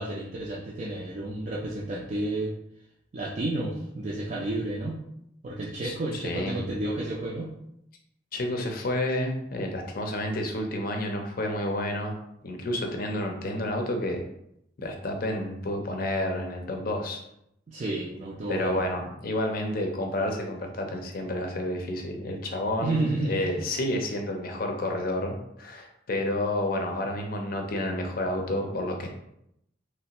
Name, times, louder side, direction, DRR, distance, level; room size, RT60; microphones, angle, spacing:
voice 1, 0.0-2.5 3.1-5.0 5.4-7.5 17.7-18.8 22.8-23.5, right 2 dB, 40° right, -5 dB, 0.4 m, -31 dB
voice 2, 6.2-6.6 8.3-12.1 12.4-14.2 14.8-17.2 18.5-29.1, left 1 dB, 50° left, 3 dB, 0.5 m, -30 dB
3.2 x 2.4 x 2.9 m, 0.77 s
head